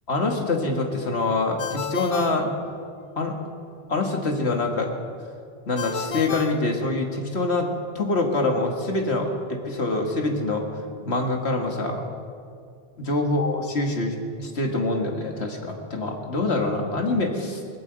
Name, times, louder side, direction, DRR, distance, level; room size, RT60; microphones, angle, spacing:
voice 1, 0.1-2.5 3.2-3.4 3.9-4.9 5.7-7.7 8.0-10.6 11.0-12.1 13.0-17.6, left 2 dB, 85° left, 2 dB, 2.1 m, -25 dB
Ringtone, 1.6-3.3 5.8-7.4, left 7 dB, 50° left, 0.4 m, -34 dB
19.5 x 9.1 x 8.1 m, 2.2 s
omnidirectional pair, 1.1 m